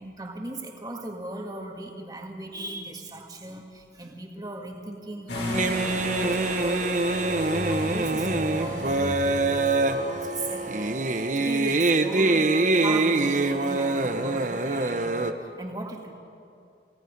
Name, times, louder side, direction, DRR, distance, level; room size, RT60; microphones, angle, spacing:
voice 1, 0.0-16.1, right 1 dB, 20° right, 2 dB, 1.9 m, -38 dB
sound 1, 5.3-10.7, left 1 dB, 75° left, 5.0 m, -34 dB
sound 2, 5.5-15.3, right 2 dB, 40° right, 0.9 m, -24 dB
28.0 x 18.0 x 5.3 m, 2.5 s
head